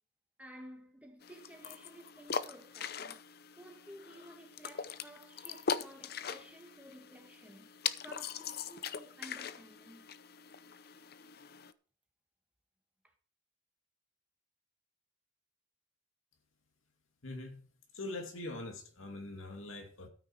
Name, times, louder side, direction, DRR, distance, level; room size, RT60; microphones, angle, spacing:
voice 1, 0.4-3.3 3.6-10.1, equal, 5° right, 1.8 m, -54 dB
sound 1, 1.2-11.7, left 6 dB, 50° left, 0.6 m, -41 dB
voice 2, 17.2-17.6 17.9-20.1, left 2 dB, 85° left, 2.5 m, -43 dB
13.0 x 9.3 x 4.6 m
head